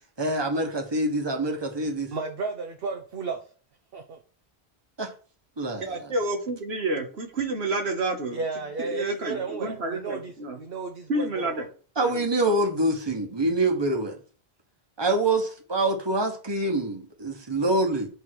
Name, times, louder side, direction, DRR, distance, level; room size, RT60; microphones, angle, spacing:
voice 1, 0.2-2.1 5.0-5.1 5.6-6.1 12.0-14.2 15.0-18.1, right 2 dB, 25° right, 1.3 m, -25 dB
voice 2, 2.1-3.4 3.9-4.2 8.3-11.7, right 4 dB, 65° right, 1.0 m, -33 dB
voice 3, 5.8-8.4 8.8-10.6 11.1-11.6 12.0-12.2, right 2 dB, 90° right, 1.5 m, -29 dB
8.0 x 3.7 x 4.7 m
omnidirectional pair, 1.1 m